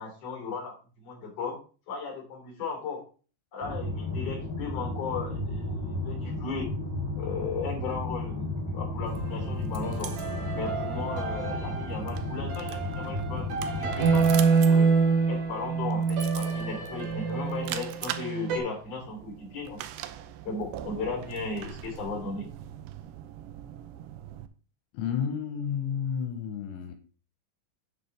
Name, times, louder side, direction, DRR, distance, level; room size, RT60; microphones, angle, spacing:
voice 1, 0.0-1.6 1.9-3.0 3.5-6.7 7.2-10.1 10.5-14.3 14.6-14.9 15.3-19.8 20.4-22.5, left 4 dB, 40° left, 1 dB, 3.6 m, -36 dB
sound 1, 3.6-14.3, left 2 dB, 5° right, 2.8 m, -33 dB
sound 2, 9.0-18.6, right 5 dB, 60° right, 4.3 m, -27 dB
sound 3, 9.1-24.5, right 12 dB, 80° right, 2.7 m, -42 dB
voice 2, 24.9-27.0, left 7 dB, 85° left, 6 dB, 3.1 m, -31 dB
9.6 x 7.8 x 3.3 m, 0.38 s
omnidirectional pair, 5.2 m